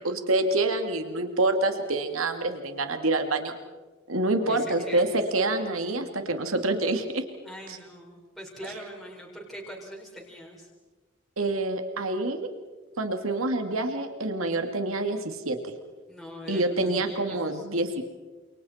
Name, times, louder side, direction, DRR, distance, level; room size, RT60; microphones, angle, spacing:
voice 1, 0.0-3.5 4.1-7.2 7.7-7.8 11.4-12.5 13.0-15.6 16.5-18.0, right 2 dB, 90° right, 6 dB, 2.3 m, -27 dB
voice 2, 4.4-5.0 7.4-10.7 16.1-17.6, equal, ahead, -4 dB, 4.6 m, -42 dB
29.5 x 28.5 x 4.3 m, 1.3 s
head